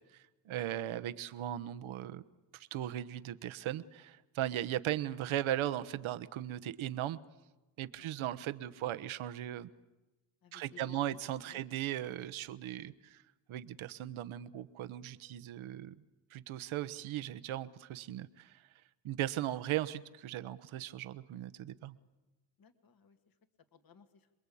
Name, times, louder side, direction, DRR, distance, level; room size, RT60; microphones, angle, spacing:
voice 1, 0.1-2.2 2.5-7.2 7.8-9.7 10.5-13.2 13.5-15.9 16.3-18.6 19.0-22.0, right 12 dB, 75° right, 11 dB, 1.2 m, -38 dB
voice 2, 10.4-11.0 11.4-11.6 22.6-23.3 23.7-24.3, left 7 dB, 45° left, 8 dB, 2.1 m, -59 dB
27.5 x 21.5 x 8.6 m, 1.1 s
cardioid pair, 105°, 49 cm